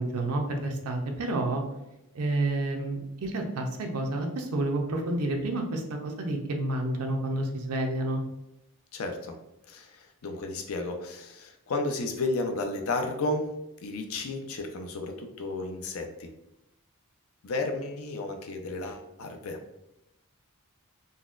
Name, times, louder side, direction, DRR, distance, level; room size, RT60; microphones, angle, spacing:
voice 1, 0.0-1.6 2.1-8.2, right 2 dB, 80° right, 3 dB, 0.5 m, -29 dB
voice 2, 8.9-9.4 9.7-13.5 13.8-16.3 17.4-19.6, left 2 dB, 65° left, 4 dB, 0.5 m, -33 dB
4.0 x 2.1 x 2.4 m, 0.89 s
head